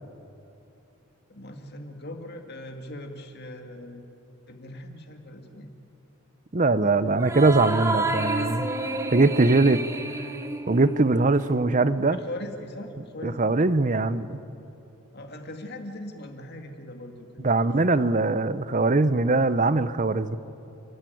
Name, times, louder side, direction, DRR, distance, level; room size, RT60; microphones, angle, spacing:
voice 1, 1.3-4.0 4.5-5.7 12.1-13.5 15.1-18.1, left 1 dB, 50° left, 5 dB, 2.2 m, -40 dB
voice 2, 6.5-8.7 9.1-9.8 10.7-12.2 13.2-14.4 17.4-20.4, right 3 dB, 35° right, 15 dB, 0.7 m, -21 dB
sound 1, 7.2-11.9, right 2 dB, 15° right, 1.0 m, -30 dB
29.5 x 13.0 x 9.4 m, 2.9 s
head